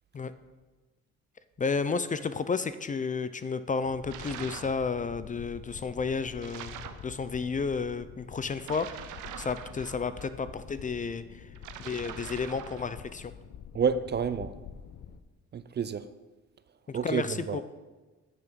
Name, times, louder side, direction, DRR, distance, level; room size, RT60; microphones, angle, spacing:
voice 1, 1.6-8.9 9.4-11.4 11.8-13.3 16.9-17.6, left 5 dB, 25° left, 0.4 m, -32 dB
sound 1, 3.8-15.2, left 8 dB, 60° left, 0.7 m, -47 dB
sound 2, 4.1-4.8 6.4-7.1 8.6-10.3 11.6-12.9, right 10 dB, 85° right, 0.7 m, -43 dB
voice 2, 13.7-14.5 15.5-16.1 16.9-17.6, right 6 dB, 35° right, 0.4 m, -29 dB
8.2 x 6.9 x 5.2 m
cardioid pair, 90°, 30 cm